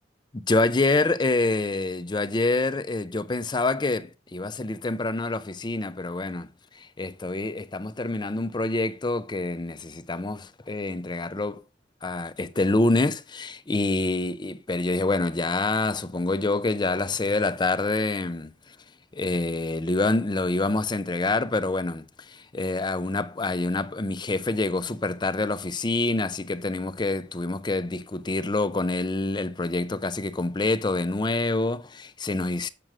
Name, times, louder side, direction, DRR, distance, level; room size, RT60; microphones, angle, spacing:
voice 1, 0.3-6.5 6.8-11.6 12.0-18.8 19.1-32.7, left 2 dB, 25° left, 0.5 m, -26 dB
7.6 x 6.1 x 4.9 m
head